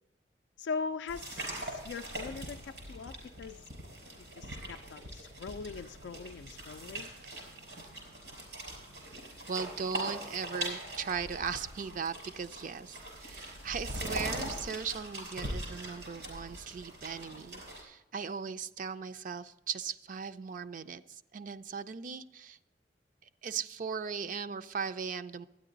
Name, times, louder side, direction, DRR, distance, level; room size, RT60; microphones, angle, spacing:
voice 1, 0.6-3.6 4.3-7.1, left 5 dB, 85° left, 7 dB, 0.3 m, -41 dB
sound 1, 1.1-17.8, right 1 dB, 85° right, 4.2 m, -42 dB
voice 2, 9.5-22.6 23.4-25.5, right 6 dB, 50° right, 13 dB, 0.4 m, -38 dB
12.5 x 9.9 x 3.9 m, 0.93 s
head